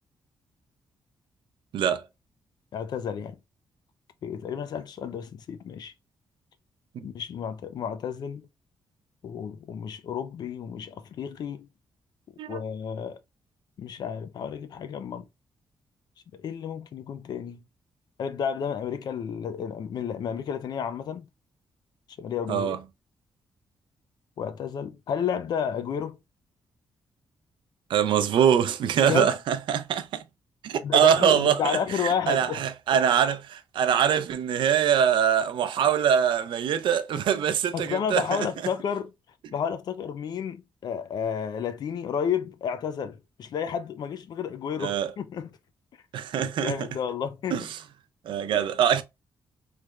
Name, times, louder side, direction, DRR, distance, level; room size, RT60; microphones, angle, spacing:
voice 1, 2.7-3.4 4.2-5.9 7.0-8.5 9.2-11.7 12.5-13.2 13.8-15.3 16.3-17.6 18.2-21.3 22.2-22.8 24.4-26.2 29.0-29.3 30.8-32.6 37.7-39.1 39.5-45.5 46.4-47.7, left 7 dB, 55° left, 0.5 m, -31 dB
voice 2, 22.5-22.8 27.9-30.2 30.6-38.5 44.8-45.1 46.1-46.9 47.5-47.8 48.2-49.0, right 8 dB, 80° right, 0.5 m, -23 dB
3.2 x 3.1 x 2.3 m
wide cardioid pair, 175°, 8 cm